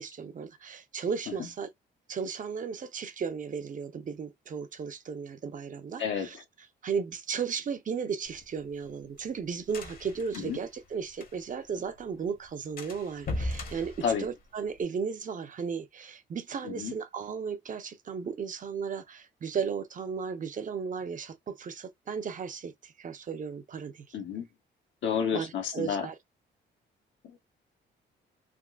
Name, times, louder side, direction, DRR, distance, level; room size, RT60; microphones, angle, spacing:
voice 1, 0.0-1.7 2.1-6.4 6.8-24.2 25.3-26.1, right 6 dB, 40° right, 0.7 m, -35 dB
sound 1, 8.2-11.7 11.9-12.0 12.3-12.5 12.8-14.8, left 1 dB, 45° left, 1.0 m, -38 dB
voice 2, 24.1-24.5 25.0-26.1, left 7 dB, 70° left, 0.9 m, -30 dB
3.6 x 2.4 x 2.3 m
cardioid pair, 90°, 20 cm